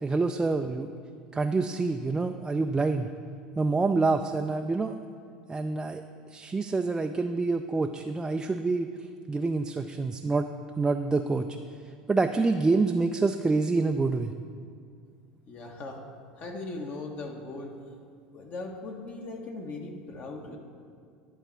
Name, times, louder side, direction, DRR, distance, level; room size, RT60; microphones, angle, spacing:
voice 1, 0.0-0.9 1.3-3.1 3.6-5.0 5.5-6.0 6.3-8.9 9.3-10.5 10.8-11.5 12.1-14.3, right 3 dB, 15° right, 5 dB, 0.4 m, -27 dB
voice 2, 15.5-16.0 16.4-17.8 18.3-20.6, left 2 dB, 45° left, 2 dB, 1.4 m, -39 dB
10.5 x 4.0 x 7.3 m, 2.3 s
hypercardioid pair, 80°, 4 cm